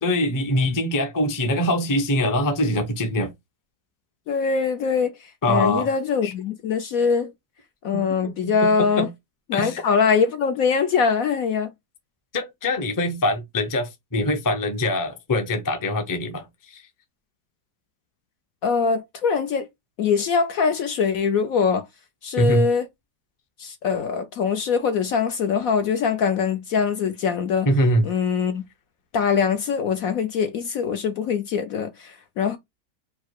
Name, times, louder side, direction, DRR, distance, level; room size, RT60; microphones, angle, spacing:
voice 1, 0.0-3.3 5.4-5.9 6.2-6.3 7.9-9.1 9.5-9.8 12.3-16.8 22.4-22.7 27.7-28.1, left 1 dB, 20° left, 0.5 m, -23 dB
voice 2, 4.3-7.3 7.8-9.1 9.5-11.7 18.6-19.7 20.0-21.9 22.2-22.9 23.6-27.7 28.0-28.6 29.1-32.6, left 6 dB, 65° left, 1.0 m, -23 dB
4.8 x 2.1 x 4.6 m
omnidirectional pair, 1.8 m